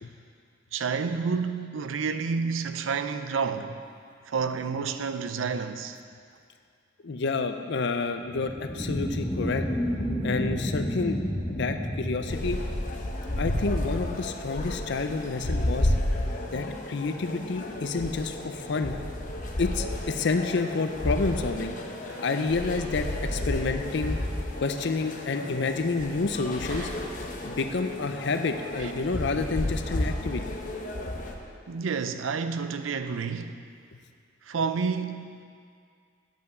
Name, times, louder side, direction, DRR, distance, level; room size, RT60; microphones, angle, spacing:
voice 1, 0.7-3.7 4.3-6.0 22.1-22.3 26.7-27.0 28.8-29.2 31.7-33.6 34.4-35.4, right 5 dB, 90° right, 9 dB, 0.5 m, -30 dB
voice 2, 7.0-9.7 10.2-11.2 11.5-12.6 13.4-15.9 16.5-18.9 19.6-21.7 22.2-24.2 24.6-26.9 27.4-30.4, left 4 dB, 60° left, 8 dB, 0.5 m, -29 dB
sound 1, 8.3-13.3, equal, 10° left, 0.9 m, -31 dB
sound 2, 12.3-31.3, left 1 dB, 45° left, 0.8 m, -32 dB
9.1 x 5.5 x 6.6 m, 2.2 s
head